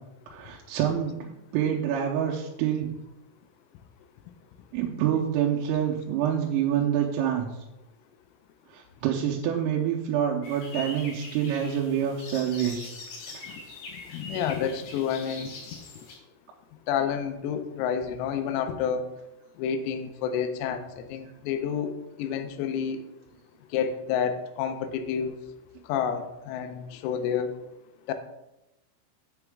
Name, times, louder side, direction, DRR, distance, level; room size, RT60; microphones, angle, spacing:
voice 1, 0.3-2.9 4.7-7.5 8.7-12.9 13.3-13.4, right 9 dB, 85° right, -2 dB, 3.3 m, -27 dB
sound 1, 10.4-16.2, left 3 dB, 65° left, 3.5 m, -42 dB
voice 2, 14.1-15.5 16.9-19.1 19.6-23.0 23.7-25.4 25.9-27.5 28.1-28.2, left 7 dB, 90° left, 8 dB, 3.5 m, -29 dB
7.8 x 7.0 x 3.5 m, 0.93 s
omnidirectional pair, 6.0 m